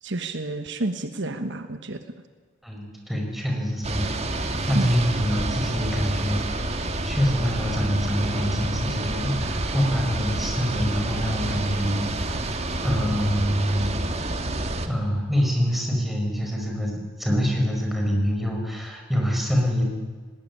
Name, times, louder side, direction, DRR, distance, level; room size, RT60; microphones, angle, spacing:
voice 1, 0.0-2.0 4.7-4.9, right 2 dB, 65° right, 8 dB, 1.3 m, -30 dB
voice 2, 2.6-13.9 14.8-19.8, equal, ahead, 0 dB, 5.4 m, -25 dB
sound 1, 3.8-14.9, right 2 dB, 35° right, 1.9 m, -28 dB
19.0 x 19.0 x 9.9 m, 1.5 s
head